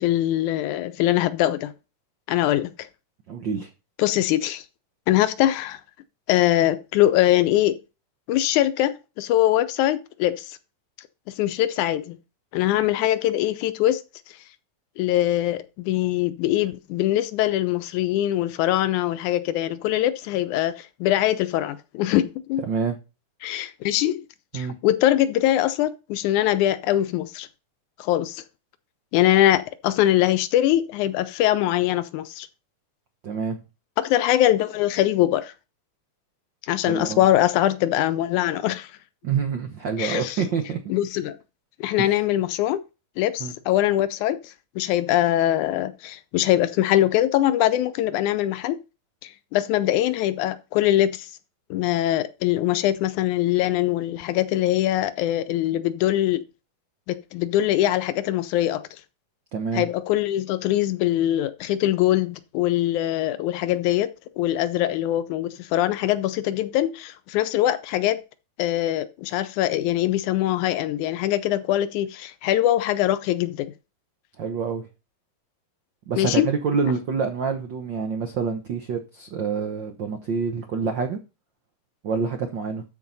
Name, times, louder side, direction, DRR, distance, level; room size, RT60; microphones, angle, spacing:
voice 1, 0.0-1.7 2.3-2.7 4.0-4.6 5.1-5.8 6.3-7.8 8.3-10.6 11.4-12.2 12.5-14.0 15.0-22.6 23.4-24.2 24.5-27.5 28.0-28.4 29.1-32.5 34.0-35.5 36.6-38.9 40.0-40.4 40.9-41.4 41.8-42.8 43.2-48.8 49.2-51.3 51.7-56.4 57.1-58.8 59.7-64.1 64.4-68.2 68.6-73.7 76.2-76.5, left 13 dB, 80° left, 2.0 m, -22 dB
voice 2, 3.3-3.7 22.7-23.0 24.5-24.7 33.2-33.6 36.9-37.2 39.2-40.8 42.0-42.2 43.4-43.5 59.5-59.9 74.4-74.8 76.1-81.2 82.0-82.8, right 5 dB, 75° right, 1.0 m, -27 dB
13.0 x 4.7 x 4.0 m
omnidirectional pair, 3.6 m